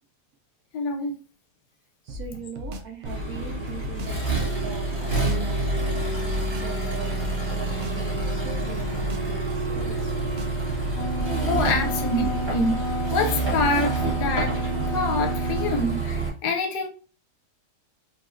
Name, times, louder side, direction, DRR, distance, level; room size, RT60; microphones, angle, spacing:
voice 1, 0.7-1.1 11.4-12.7 13.1-13.9 14.2-14.6 14.9-16.9, left 3 dB, 80° left, 1.2 m, -26 dB
voice 2, 2.0-6.2 6.6-10.6 11.8-11.9, right 6 dB, 65° right, 1.2 m, -41 dB
sound 1, 2.1-4.2 4.6-6.8 7.2-9.4 9.7-12.0, equal, 85° right, 0.6 m, -37 dB
Accelerating revving vroom, 3.0-16.3, right 3 dB, 20° right, 0.9 m, -27 dB
Wind instrument woodwind instrument, 10.7-15.9, left 2 dB, 55° left, 0.8 m, -33 dB
4.0 x 2.4 x 2.4 m
omnidirectional pair, 1.7 m